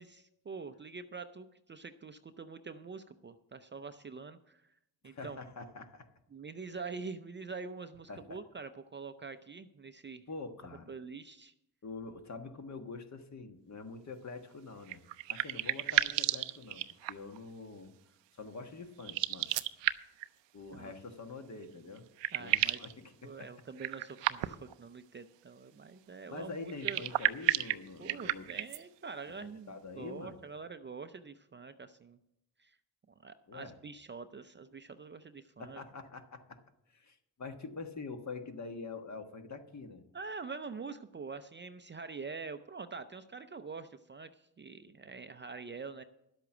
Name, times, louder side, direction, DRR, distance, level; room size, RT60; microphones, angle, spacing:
voice 1, 0.0-4.6 5.0-5.4 6.3-10.2 10.9-11.5 20.7-20.9 22.3-22.8 23.2-27.0 28.0-32.2 32.6-32.8 33.2-35.8 40.1-46.0, right 4 dB, 25° right, 9 dB, 0.5 m, -45 dB
voice 2, 5.0-6.1 8.1-8.4 10.3-10.9 11.8-15.0 15.3-17.9 18.3-19.5 20.5-22.1 22.4-23.5 26.3-28.7 29.4-30.4 33.5-33.8 35.6-36.6 36.9-40.0, left 4 dB, 40° left, 6 dB, 1.4 m, -45 dB
sound 1, 14.8-17.4 19.0-20.3 21.6-21.7 22.0-22.9 23.8-24.7 26.7-28.8, right 14 dB, 80° right, 0.6 m, -32 dB
11.5 x 8.2 x 6.0 m, 0.81 s
cardioid pair, 80°, 43 cm